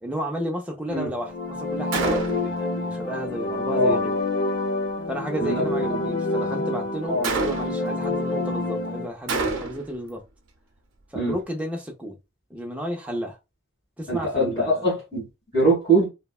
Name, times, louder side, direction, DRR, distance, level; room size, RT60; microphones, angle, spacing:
voice 1, 0.0-4.2 5.1-10.2 11.1-12.2 12.5-13.4 14.0-14.9, equal, 5° right, 0.5 m, -32 dB
sound 1, 1.1-9.1, left 2 dB, 60° left, 0.6 m, -27 dB
Gunshot gunfire, 1.9-2.6 7.2-7.9 9.3-10.0, right 3 dB, 75° right, 0.6 m, -27 dB
voice 2, 14.1-15.3 15.5-16.1, right 2 dB, 25° left, 1.7 m, -22 dB
3.2 x 2.1 x 2.3 m
head